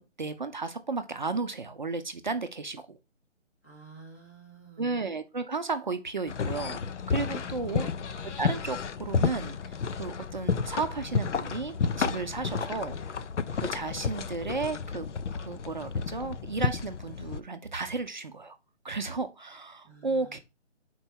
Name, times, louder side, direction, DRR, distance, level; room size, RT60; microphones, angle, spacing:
voice 1, 0.0-3.0 4.8-6.8 7.1-7.9 8.2-13.2 13.5-15.1 15.3-18.6 18.8-20.4, right 4 dB, 40° right, 0.5 m, -34 dB
voice 2, 3.6-5.0 7.4-7.9 19.8-20.4, right 4 dB, 15° left, 0.6 m, -50 dB
sound 1, 6.3-17.4, left 5 dB, 75° left, 0.7 m, -31 dB
5.3 x 4.5 x 4.4 m
hypercardioid pair, 165°, 35 cm